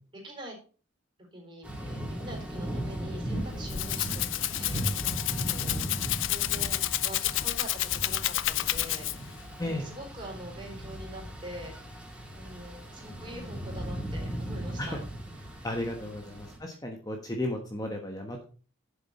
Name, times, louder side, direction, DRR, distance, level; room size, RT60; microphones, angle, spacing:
voice 1, 0.2-0.6 1.3-4.9 5.4-5.9 6.3-9.3 9.6-11.7 12.4-15.0, equal, 25° right, -1 dB, 4.1 m, -44 dB
Thunder / Rain, 1.6-16.6, right 1 dB, 5° right, 3.4 m, -37 dB
Rattle (instrument), 3.4-9.4, left 15 dB, 65° left, 0.5 m, -30 dB
voice 2, 15.6-18.4, left 1 dB, 20° left, 2 dB, 1.2 m, -34 dB
11.0 x 7.3 x 4.2 m, 0.39 s
head